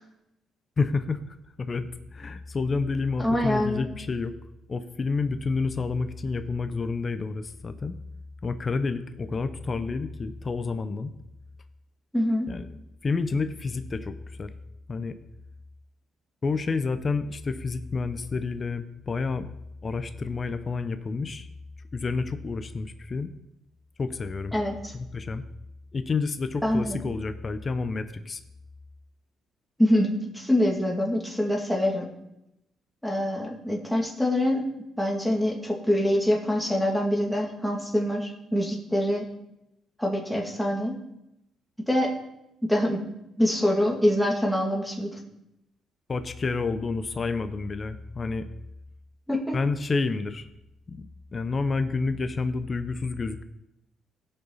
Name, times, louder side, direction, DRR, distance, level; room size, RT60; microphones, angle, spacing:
voice 1, 0.8-4.3 4.7-8.0 8.4-11.1 12.5-12.7 13.0-14.5 14.9-15.2 16.4-19.5 19.8-21.5 21.9-23.3 24.0-24.6 24.9-25.4 25.9-28.4 46.1-48.5 49.5-50.5 50.9-51.0 51.3-53.4, left 4 dB, 35° left, 10 dB, 0.6 m, -29 dB
voice 2, 3.2-3.8 12.1-12.5 24.5-24.9 26.6-27.0 29.8-30.1 30.3-32.1 33.0-34.7 35.0-39.3 40.0-41.0 41.9-42.1 42.7-43.0 43.4-45.2 49.3-49.6, left 1 dB, ahead, -2 dB, 2.4 m, -25 dB
16.0 x 5.7 x 4.1 m, 0.86 s
cardioid pair, 90°, 0 cm